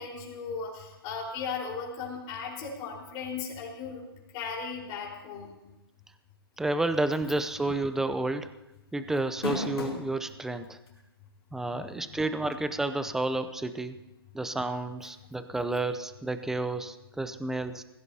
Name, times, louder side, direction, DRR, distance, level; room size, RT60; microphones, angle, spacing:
voice 1, 0.0-4.0 4.3-5.5 11.7-12.1, left 5 dB, 30° left, -3 dB, 4.4 m, -37 dB
voice 2, 6.6-8.5 8.9-10.8 11.5-14.0 14.3-17.8, right 2 dB, 5° right, 11 dB, 0.6 m, -30 dB
sound 1, 7.5-7.7 8.0-8.1 9.2-10.1 10.9-11.0 12.5-12.6, left 3 dB, 85° left, 3.4 m, -33 dB
20.0 x 16.0 x 2.8 m, 0.98 s
hypercardioid pair, 130°, 13 cm